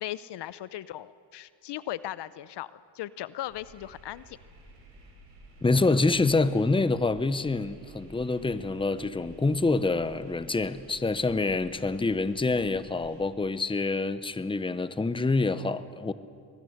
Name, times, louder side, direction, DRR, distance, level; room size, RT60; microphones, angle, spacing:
voice 1, 0.0-4.4, left 13 dB, 65° left, 17 dB, 0.8 m, -38 dB
sound 1, 3.5-13.2, right 1 dB, 80° right, 7.3 m, -52 dB
voice 2, 5.6-16.1, left 3 dB, 10° left, 13 dB, 0.9 m, -26 dB
24.0 x 20.5 x 8.1 m, 2.3 s
cardioid pair, 90°, 45 cm